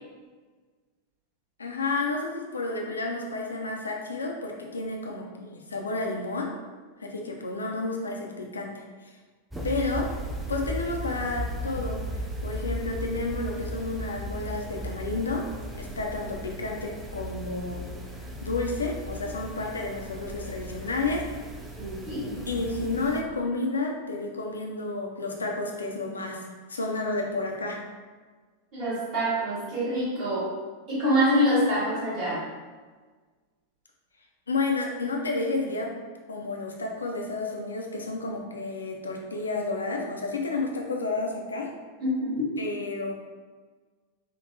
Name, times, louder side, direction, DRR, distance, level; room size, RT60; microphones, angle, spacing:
voice 1, 1.6-6.5 7.0-8.7 9.6-10.1 10.5-12.0 12.4-15.5 15.7-17.9 18.4-21.3 22.5-26.4 26.7-27.8 34.5-35.9 36.3-41.7 42.6-43.1, left 3 dB, 75° left, 1 dB, 0.4 m, -31 dB
sound 1, 9.5-23.2, equal, 10° right, 0.3 m, -36 dB
voice 2, 21.8-22.3 28.7-30.5 30.9-32.4 42.0-42.4, equal, 40° right, -8 dB, 1.5 m, -25 dB
3.6 x 2.0 x 2.6 m, 1.4 s
figure-of-eight pair, 90°, 0 cm